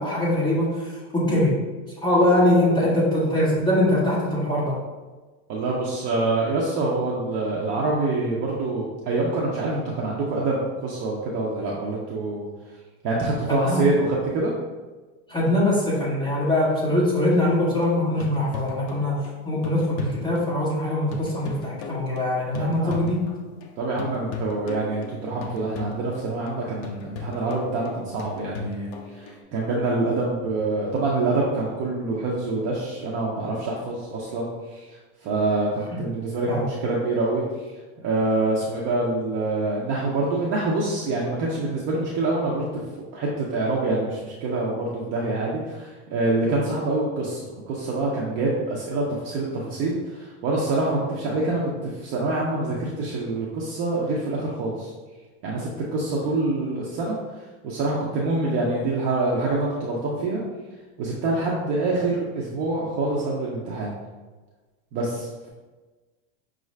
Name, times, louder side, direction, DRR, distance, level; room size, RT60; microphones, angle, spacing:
voice 1, 0.0-1.6 2.0-4.8 13.5-13.9 15.3-23.2 35.9-36.0 36.5-36.7, left 1 dB, 10° left, -8 dB, 1.0 m, -22 dB
voice 2, 5.5-12.5 13.0-14.5 22.6-23.1 23.8-34.9 35.2-37.7 38.0-42.6 43.1-54.9 55.4-57.2 57.6-60.4 61.0-63.9 64.9-65.5, right 2 dB, 35° right, -4 dB, 0.5 m, -26 dB
sound 1, 17.5-23.7 24.0-29.4, left 3 dB, 40° left, 0.4 m, -37 dB
5.5 x 2.4 x 3.1 m, 1.3 s
supercardioid pair, 170°, 37 cm